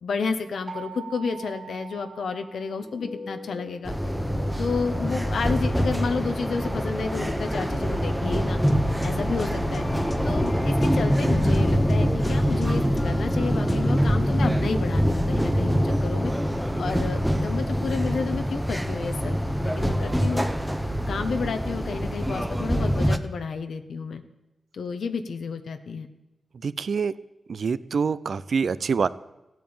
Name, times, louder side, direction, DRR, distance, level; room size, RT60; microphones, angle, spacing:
voice 1, 0.0-3.9 4.6-8.6 9.0-9.8 10.2-16.3 16.8-19.4 19.6-20.4 21.1-24.2 24.7-26.1, left 5 dB, 80° left, 7 dB, 1.1 m, -31 dB
sound 1, 0.7-3.4, right 6 dB, 35° right, 3.0 m, -42 dB
sound 2, 2.8-14.1, left 2 dB, 40° left, 1.5 m, -38 dB
sound 3, 3.8-23.2, equal, ahead, 0.9 m, -24 dB
voice 2, 26.6-27.1 27.5-29.1, right 5 dB, 60° right, 17 dB, 0.6 m, -25 dB
15.5 x 9.2 x 8.8 m, 0.96 s
wide cardioid pair, 115°, 0 cm